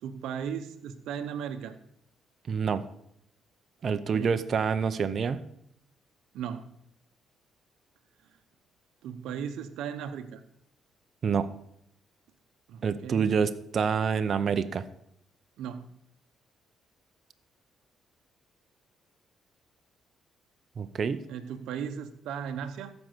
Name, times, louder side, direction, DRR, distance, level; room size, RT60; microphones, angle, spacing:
voice 1, 0.0-1.7 3.9-4.4 6.3-6.6 9.0-10.4 12.7-13.3 15.6-15.8 21.3-22.9, right 8 dB, 85° right, 7 dB, 0.8 m, -36 dB
voice 2, 2.5-2.8 3.8-5.4 11.2-11.5 12.8-14.8 20.8-21.2, right 6 dB, 50° right, 10 dB, 0.7 m, -27 dB
14.0 x 5.4 x 6.7 m, 0.73 s
cardioid pair, 90°, 0 cm